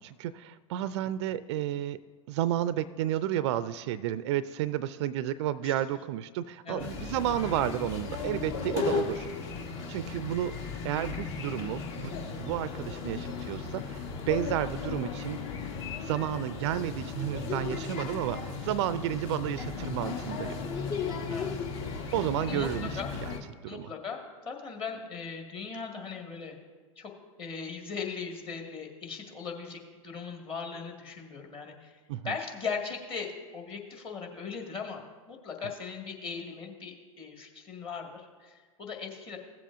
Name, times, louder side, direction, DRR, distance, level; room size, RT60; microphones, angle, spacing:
voice 1, 0.0-2.0 2.3-9.3 9.9-10.6 10.8-15.4 16.0-20.6 22.1-23.4 23.6-23.9 32.1-32.4, right 12 dB, 55° right, 16 dB, 0.4 m, -32 dB
sound 1, 6.8-23.4, left 5 dB, 50° left, 1.6 m, -36 dB
voice 2, 22.5-23.1 23.7-24.2 24.5-26.6 27.0-27.1 27.4-32.0 32.2-39.4, left 5 dB, 30° left, 1 dB, 1.8 m, -39 dB
16.5 x 7.6 x 2.5 m, 1.4 s
figure-of-eight pair, 95°, 18 cm